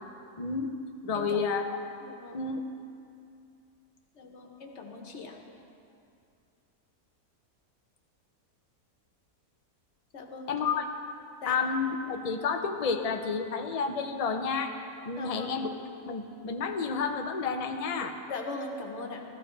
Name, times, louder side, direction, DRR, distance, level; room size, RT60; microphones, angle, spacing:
voice 1, 0.4-0.7 1.0-1.8 2.3-2.6 10.5-10.9 11.5-14.8 15.0-15.7 16.1-18.1, left 5 dB, 80° left, 5 dB, 0.3 m, -30 dB
voice 2, 1.1-1.5 2.0-2.4 4.1-5.4 10.1-10.5 11.4-11.6 15.2-15.5 18.3-19.2, left 3 dB, 50° left, 2 dB, 1.3 m, -40 dB
14.5 x 13.0 x 3.2 m, 2.5 s
omnidirectional pair, 1.6 m